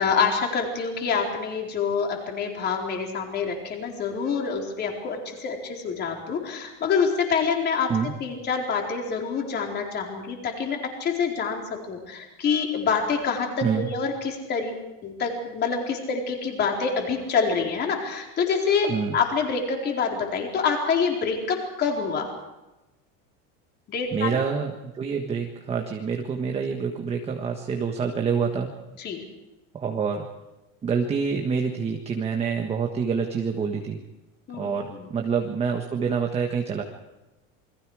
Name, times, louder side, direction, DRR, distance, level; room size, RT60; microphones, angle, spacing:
voice 1, 0.0-7.9 8.2-14.7 15.0-22.3 23.9-24.4 29.0-29.2 34.5-35.1, left 5 dB, 25° left, 1 dB, 4.3 m, -26 dB
voice 2, 24.1-28.7 29.7-30.3 30.8-34.0 34.6-36.8, right 6 dB, 15° right, 3 dB, 1.5 m, -27 dB
28.5 x 22.5 x 4.9 m, 1.0 s
cardioid pair, 170°, 37 cm